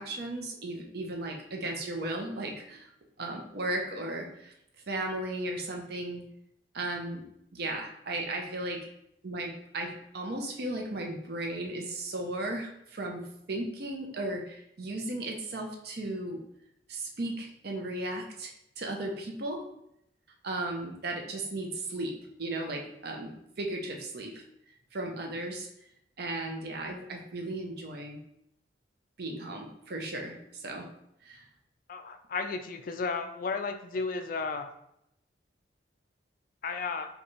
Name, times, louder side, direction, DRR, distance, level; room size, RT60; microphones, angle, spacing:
voice 1, 0.0-2.9 3.2-4.5 4.9-6.2 6.7-7.2 7.5-8.8 9.2-13.2 13.5-16.4 16.9-19.6 20.4-22.1 22.4-23.3 23.6-24.4 24.9-25.7 26.2-28.2 29.2-30.9 31.2-31.5, right 2 dB, 60° right, 1 dB, 0.7 m, -35 dB
voice 2, 31.9-34.7 36.6-37.1, left 4 dB, 50° left, 7 dB, 0.3 m, -33 dB
5.0 x 2.3 x 3.1 m, 0.78 s
head